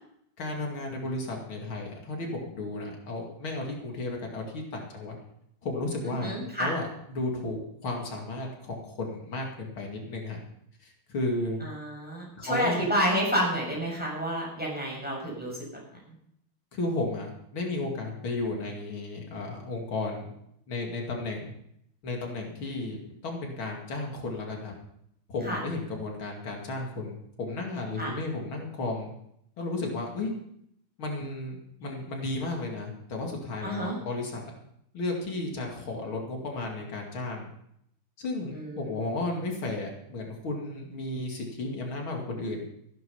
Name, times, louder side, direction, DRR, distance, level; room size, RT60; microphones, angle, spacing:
voice 1, 0.4-5.2 5.6-10.4 10.8-11.6 12.4-12.8 16.7-20.3 20.7-21.5 22.0-24.7 25.3-29.1 29.6-30.3 31.0-34.6 34.9-37.5 38.2-42.7, left 2 dB, 85° left, 1 dB, 3.2 m, -33 dB
voice 2, 6.0-6.7 11.6-16.1 25.4-25.6 28.0-28.1 33.6-34.0 38.5-38.9, equal, 5° right, -3 dB, 6.3 m, -30 dB
14.5 x 11.0 x 5.6 m, 0.74 s
omnidirectional pair, 2.2 m